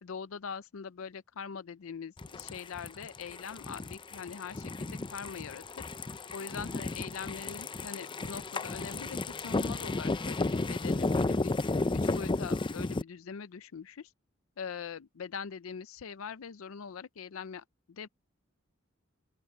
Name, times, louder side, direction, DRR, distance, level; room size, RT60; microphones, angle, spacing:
voice 1, 0.0-5.9 6.3-11.5 11.9-14.1 14.6-18.1, left 6 dB, 85° left, 0.5 m, -42 dB
sound 1, 2.2-13.0, left 3 dB, 25° left, 0.5 m, -33 dB
open air
head